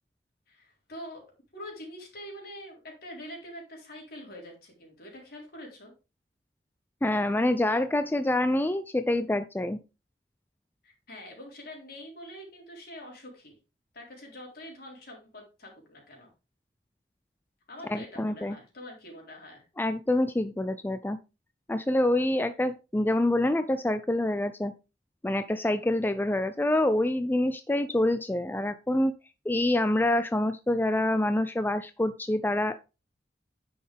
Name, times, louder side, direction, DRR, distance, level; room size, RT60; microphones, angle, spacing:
voice 1, 0.5-1.2 1.5-5.9 10.8-13.6 13.9-16.3 17.7-19.6, equal, 60° left, 0 dB, 3.9 m, -45 dB
voice 2, 7.0-9.8 17.9-18.6 19.8-21.2 21.7-24.7 25.2-29.1 29.5-32.8, left 1 dB, 10° left, 11 dB, 0.4 m, -26 dB
9.4 x 6.4 x 3.5 m, 0.29 s
head